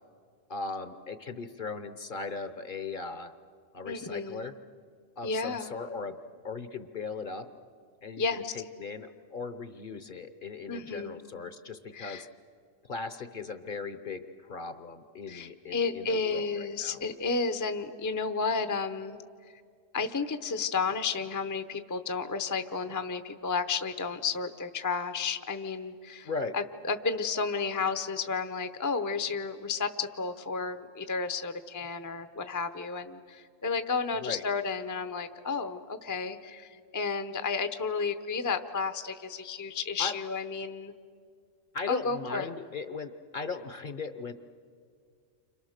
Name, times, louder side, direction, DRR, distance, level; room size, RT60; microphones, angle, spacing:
voice 1, 0.5-3.3 3.7-4.5 5.2-6.2 6.4-7.5 8.0-12.3 12.8-17.0 26.2-26.6 34.1-34.4 40.0-40.2 41.7-44.3, left 4 dB, 45° left, 10 dB, 0.9 m, -38 dB
voice 2, 3.9-4.5 5.2-5.7 8.2-8.5 10.7-11.2 11.9-12.3 15.3-19.2 19.9-26.3 26.5-40.9 41.9-42.5, left 4 dB, 20° left, 9 dB, 0.6 m, -32 dB
29.5 x 26.5 x 6.6 m, 2.2 s
omnidirectional pair, 1.3 m